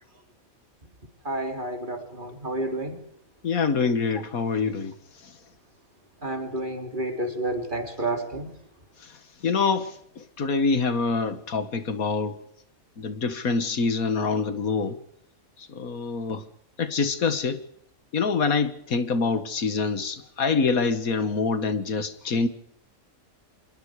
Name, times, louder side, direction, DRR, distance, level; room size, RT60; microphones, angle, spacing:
voice 1, 1.2-3.0 6.2-8.5, right 1 dB, 35° right, 5 dB, 3.4 m, -30 dB
voice 2, 3.4-4.9 9.4-10.0 10.4-12.4 13.0-15.0 15.7-16.4 16.8-17.6 18.1-22.5, left 4 dB, 80° left, 11 dB, 2.1 m, -25 dB
26.5 x 22.0 x 4.9 m, 0.72 s
omnidirectional pair, 1.5 m